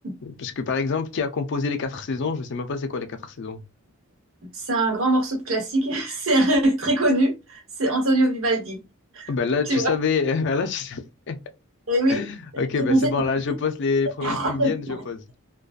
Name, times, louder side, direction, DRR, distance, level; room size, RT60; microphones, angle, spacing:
voice 1, 0.2-3.6 9.3-11.0 11.3-11.4 12.1-15.2, left 4 dB, 55° left, 0.4 m, -26 dB
voice 2, 4.5-8.8 9.1-9.3 9.7-9.9 11.9-12.2 12.5-13.1 14.2-15.0, right 1 dB, 70° right, 1.1 m, -22 dB
2.5 x 2.2 x 2.4 m
head